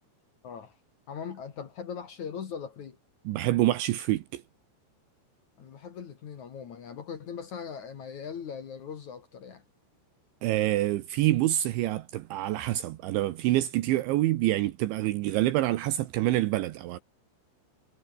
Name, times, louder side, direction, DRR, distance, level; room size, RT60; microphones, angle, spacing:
voice 1, 0.4-0.8 1.1-3.0 5.6-9.6, left 7 dB, 50° left, 2.5 m, -40 dB
voice 2, 3.3-4.4 10.4-17.0, right 15 dB, 75° right, 3.3 m, -26 dB
omnidirectional pair, 5.7 m